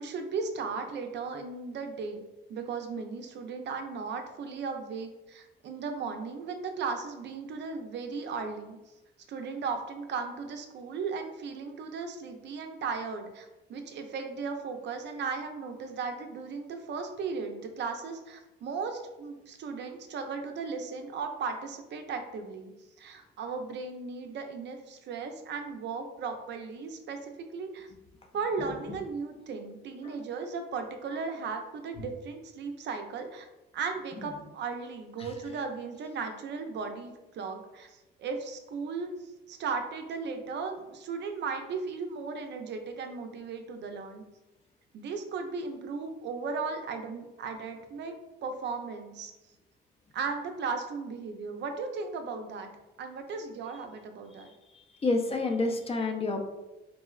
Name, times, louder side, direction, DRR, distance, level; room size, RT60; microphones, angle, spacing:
voice 1, 0.0-2.2 2.5-8.8 9.3-22.7 23.0-27.9 28.3-33.5 33.7-39.1 39.5-44.2 44.9-48.1 48.4-49.3 50.1-52.7 53.0-54.5, right 5 dB, 60° right, 5 dB, 0.4 m, -36 dB
voice 2, 54.4-56.5, left 3 dB, 30° left, 4 dB, 0.4 m, -30 dB
3.6 x 2.0 x 2.3 m, 1.0 s
cardioid pair, 90°, 20 cm